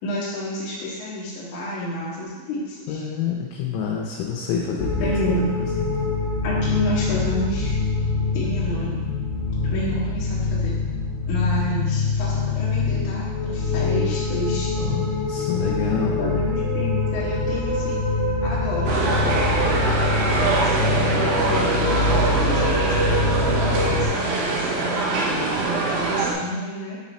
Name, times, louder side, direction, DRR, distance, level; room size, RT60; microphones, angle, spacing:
voice 1, 0.0-3.0 5.0-5.5 6.4-7.8 8.3-9.0 9.7-10.7 11.3-14.7 16.0-18.0 18.4-19.8 20.4-23.3 23.7-27.0, left 1 dB, 55° left, -8 dB, 2.3 m, -30 dB
voice 2, 2.9-5.1 5.7-6.1 14.8-16.1, left 7 dB, 85° left, -3 dB, 3.4 m, -27 dB
sound 1, 4.8-24.0, left 3 dB, 40° left, 1.6 m, -24 dB
sound 2, 18.9-26.3, right 3 dB, 75° right, 2.5 m, -24 dB
8.6 x 4.1 x 4.2 m, 1.4 s
omnidirectional pair, 5.8 m